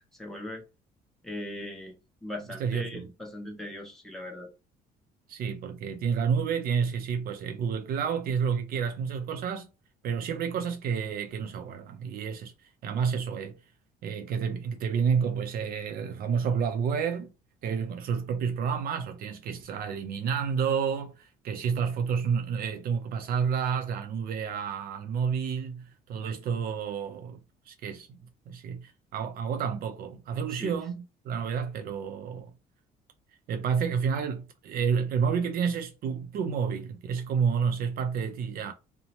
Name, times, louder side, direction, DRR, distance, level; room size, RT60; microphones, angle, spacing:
voice 1, 0.2-0.6 1.2-2.0 2.2-4.5 30.5-30.7, left 1 dB, ahead, 0.9 m, -39 dB
voice 2, 2.6-3.1 5.3-9.7 10.0-12.5 12.8-13.6 14.0-17.3 17.6-27.4 27.7-28.2 28.5-32.5 33.5-38.7, right 6 dB, 60° right, 0.4 m, -30 dB
2.7 x 2.0 x 2.9 m
cardioid pair, 110°, 17 cm